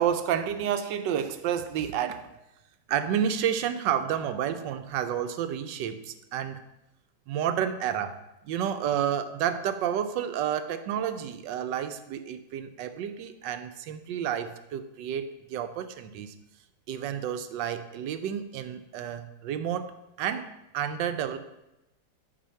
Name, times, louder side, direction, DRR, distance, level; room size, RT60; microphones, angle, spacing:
voice 1, 0.0-2.3 2.9-6.6 7.3-16.3 16.9-21.4, right 9 dB, 85° right, 9 dB, 1.4 m, -30 dB
10.5 x 4.8 x 5.6 m, 0.94 s
omnidirectional pair, 1.9 m